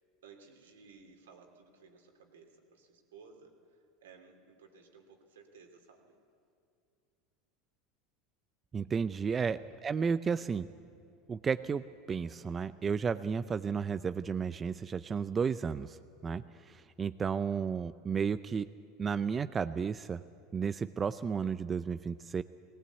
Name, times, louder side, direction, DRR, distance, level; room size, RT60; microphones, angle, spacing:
voice 1, 0.2-6.1 9.4-10.0, right 5 dB, 85° right, 3 dB, 2.9 m, -58 dB
voice 2, 8.7-10.7 11.3-18.7 19.0-20.2 20.5-22.4, right 6 dB, 25° right, 12 dB, 0.5 m, -33 dB
19.0 x 18.5 x 8.2 m, 2.5 s
hypercardioid pair, 85°, 0 cm